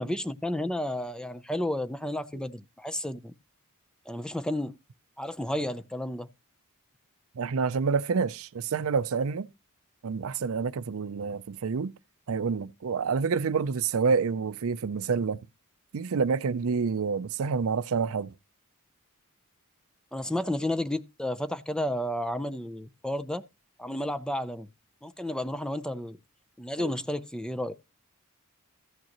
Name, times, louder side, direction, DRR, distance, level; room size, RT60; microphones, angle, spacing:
voice 1, 0.0-3.3 4.1-4.8 5.2-6.3 20.1-23.4 23.8-24.7 25.0-26.2 26.6-27.7, left 1 dB, 5° left, 0.5 m, -32 dB
voice 2, 7.4-9.5 10.0-11.9 12.3-15.4 15.9-18.3 26.8-26.9, right 5 dB, 65° right, 0.5 m, -28 dB
14.5 x 9.0 x 2.9 m
head